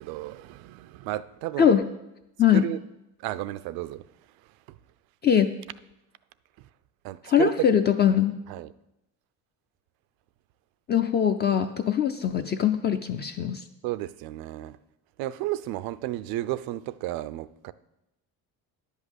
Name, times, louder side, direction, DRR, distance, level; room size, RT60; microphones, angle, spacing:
voice 1, 0.0-1.8 2.5-2.8 3.2-4.0 4.7-4.8 6.6-6.7 7.0-7.7 8.5-8.7 13.8-14.8 15.2-17.7, right 15 dB, 85° right, 16 dB, 0.6 m, -33 dB
voice 2, 5.2-5.5 7.2-8.3 10.9-13.6, left 8 dB, 30° left, 7 dB, 0.4 m, -22 dB
10.5 x 5.6 x 8.1 m, 0.89 s
cardioid pair, 155°, 35 cm